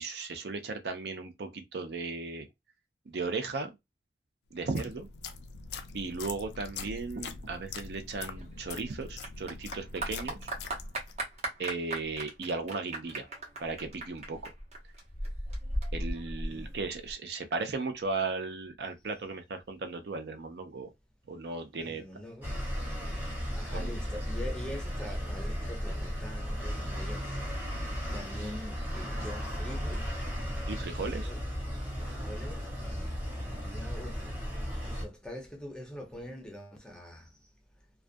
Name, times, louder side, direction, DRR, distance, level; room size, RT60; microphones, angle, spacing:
voice 1, 0.0-2.5 3.1-3.7 4.5-5.1 5.9-10.5 11.6-13.3 13.6-14.5 15.9-20.9 21.3-22.0 23.7-23.9 30.7-31.3, right 3 dB, 65° right, 0.5 m, -36 dB
sound 1, 4.5-11.3, left 5 dB, 70° left, 0.4 m, -43 dB
Clapping / Applause, 8.1-17.1, right 1 dB, 40° right, 0.8 m, -37 dB
voice 2, 21.8-22.6 23.5-30.1 31.1-31.5 32.1-37.5, left 1 dB, 5° left, 0.5 m, -44 dB
sound 2, 22.4-35.1, equal, 10° right, 0.9 m, -35 dB
2.3 x 2.2 x 2.4 m
head